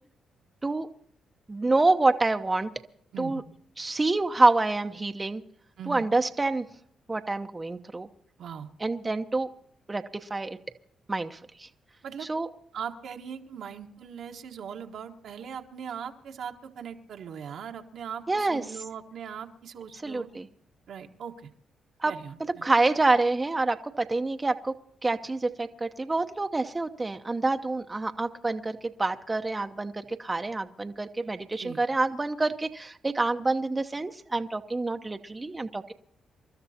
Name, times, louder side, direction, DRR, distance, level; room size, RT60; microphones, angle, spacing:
voice 1, 1.5-2.7 3.2-3.4 3.8-5.4 5.9-6.7 7.1-8.1 8.8-9.5 9.9-10.6 11.1-11.7 12.2-12.5 18.3-18.6 20.0-20.5 22.0-22.1 22.4-24.7 25.0-35.9, right 3 dB, 25° right, 6 dB, 0.9 m, -27 dB
voice 2, 3.1-3.4 5.8-6.0 8.4-8.7 12.0-12.3 12.7-20.3 20.9-21.5 22.1-22.6 31.5-31.8, right 7 dB, 70° right, 3 dB, 1.4 m, -40 dB
28.0 x 12.5 x 2.9 m, 0.64 s
supercardioid pair, 60°, 0 cm